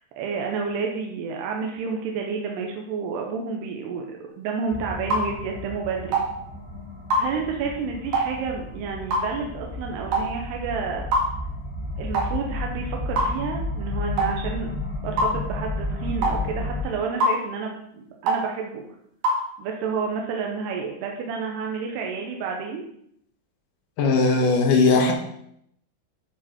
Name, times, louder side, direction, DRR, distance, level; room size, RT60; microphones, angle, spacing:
voice 1, 0.2-6.2 7.2-11.1 12.0-14.7 15.0-18.8 19.6-22.8 24.8-25.1, right 5 dB, 75° right, 1 dB, 2.5 m, -30 dB
sound 1, 4.7-16.8, left 2 dB, 5° right, 1.7 m, -32 dB
sound 2, 5.1-5.3 6.1-6.3 7.1-7.3 8.1-8.3 9.1-9.3 10.1-10.3 11.1-11.3 12.1-12.3 13.2-13.4 14.2-14.3 15.2-15.3 16.2-16.4 17.2-17.4 18.3-18.4 19.2-19.4, right 1 dB, 55° right, 2.6 m, -22 dB
voice 2, 24.0-25.1, left 3 dB, 80° left, 0 dB, 1.9 m, -18 dB
11.5 x 5.1 x 4.3 m, 0.72 s
omnidirectional pair, 5.6 m